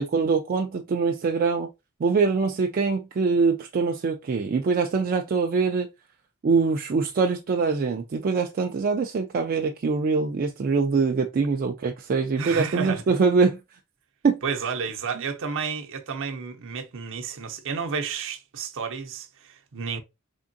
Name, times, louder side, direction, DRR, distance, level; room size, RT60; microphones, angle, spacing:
voice 1, 0.0-1.7 2.0-5.9 6.4-13.6 14.2-14.4, right 4 dB, 40° right, 0.4 m, -23 dB
voice 2, 12.4-13.0 14.4-20.0, right 5 dB, 65° right, 0.7 m, -31 dB
3.6 x 3.5 x 2.6 m
head